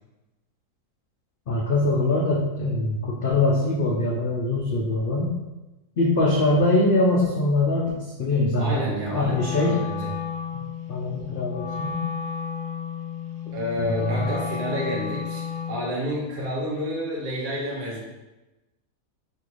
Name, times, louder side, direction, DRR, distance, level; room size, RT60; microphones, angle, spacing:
voice 1, 1.5-5.3 6.0-9.8 10.9-12.0 13.9-14.2, left 2 dB, 85° left, -3 dB, 0.4 m, -23 dB
voice 2, 8.6-10.1 13.5-18.0, equal, 75° right, -3 dB, 1.6 m, -29 dB
Wind instrument woodwind instrument, 9.2-15.9, left 7 dB, 65° left, 1.0 m, -32 dB
5.4 x 2.5 x 3.0 m, 1.1 s
omnidirectional pair, 1.7 m